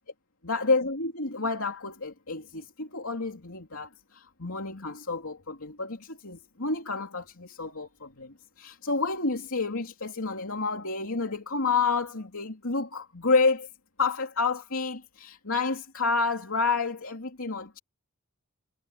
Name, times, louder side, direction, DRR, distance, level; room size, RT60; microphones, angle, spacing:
voice 1, 0.4-13.7 14.0-17.8, left 4 dB, 70° left, 3.0 m, -29 dB
head